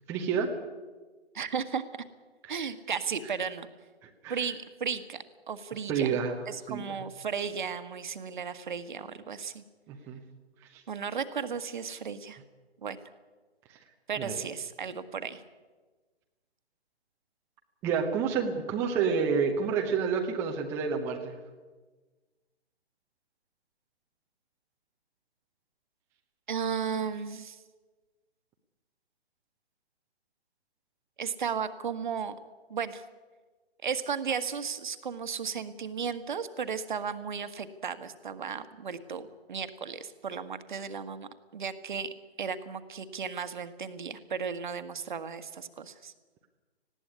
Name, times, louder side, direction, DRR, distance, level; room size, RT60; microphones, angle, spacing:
voice 1, 0.1-0.5 2.4-2.6 4.0-4.4 5.9-6.3 6.7-6.8 9.9-10.2 10.7-10.8 13.7-13.8 14.2-14.3 17.8-21.4, right 6 dB, 5° right, 1 dB, 0.8 m, -29 dB
voice 2, 1.3-1.8 2.5-3.7 4.3-6.2 6.5-9.6 10.9-12.4 12.8-13.0 14.1-15.4 26.5-27.6 31.2-32.3 32.7-33.0 33.8-42.1 42.4-46.1, right 6 dB, 45° right, 11 dB, 1.5 m, -35 dB
19.5 x 15.5 x 9.7 m, 1.3 s
figure-of-eight pair, 140°, 33 cm